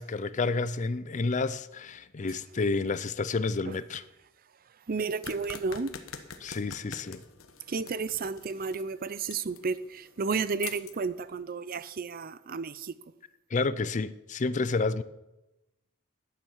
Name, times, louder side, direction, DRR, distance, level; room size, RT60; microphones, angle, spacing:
voice 1, 0.0-4.0 6.4-7.2 13.5-15.0, left 3 dB, 35° left, 0.5 m, -30 dB
voice 2, 4.9-5.9 7.7-12.9, right 4 dB, 45° right, 0.5 m, -32 dB
sound 1, 5.2-11.4, left 7 dB, 85° left, 1.2 m, -46 dB
12.0 x 9.2 x 7.4 m
head